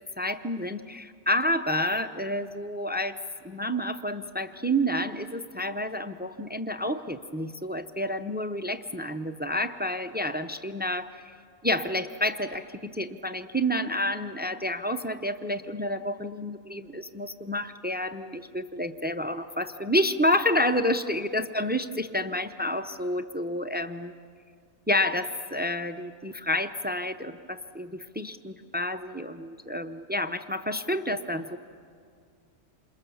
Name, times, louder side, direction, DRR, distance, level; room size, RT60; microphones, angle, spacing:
voice 1, 0.2-3.2 3.4-11.3 11.6-24.1 24.9-31.6, left 1 dB, 15° right, 9 dB, 0.3 m, -29 dB
28.5 x 27.0 x 7.1 m, 2.2 s
omnidirectional pair, 1.4 m